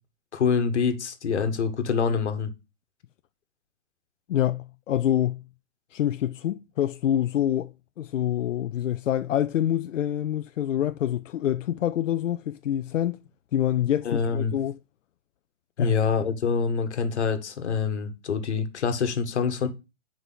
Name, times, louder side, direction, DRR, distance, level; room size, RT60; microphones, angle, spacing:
voice 1, 0.3-2.5 14.0-14.5 15.8-19.7, left 6 dB, 65° left, 1.5 m, -25 dB
voice 2, 4.3-5.4 5.9-13.2 13.5-14.8 15.8-16.0, left 11 dB, 90° left, 0.5 m, -26 dB
8.0 x 4.9 x 4.0 m
hypercardioid pair, 175°, 37 cm